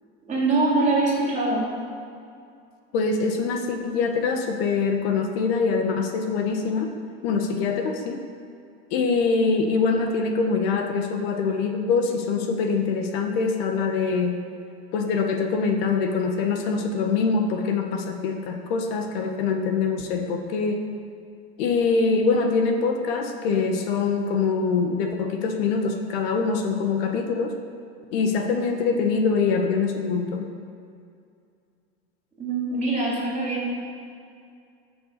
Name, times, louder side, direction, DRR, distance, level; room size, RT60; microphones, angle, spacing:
voice 1, 0.3-1.7 32.4-33.7, right 2 dB, 20° right, -3 dB, 3.7 m, -23 dB
voice 2, 2.9-6.9 7.2-8.2 8.9-14.4 14.9-20.8 21.6-27.5 28.1-30.5, left 4 dB, 65° left, 4 dB, 1.5 m, -24 dB
13.5 x 7.1 x 6.7 m, 2.4 s
supercardioid pair, 145°, 32 cm